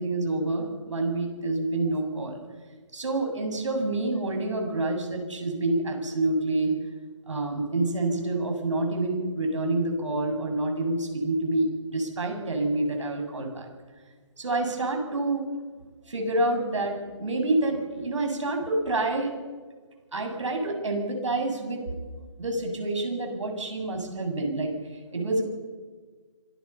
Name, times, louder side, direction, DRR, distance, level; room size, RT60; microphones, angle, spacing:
voice 1, 0.0-2.4 2.9-6.7 7.3-13.7 14.4-15.4 16.1-19.3 20.1-22.1 22.4-24.7 25.1-25.4, right 2 dB, 75° right, 4 dB, 7.5 m, -27 dB
25.5 x 22.5 x 5.8 m, 1.5 s
hypercardioid pair, 175°, 16 cm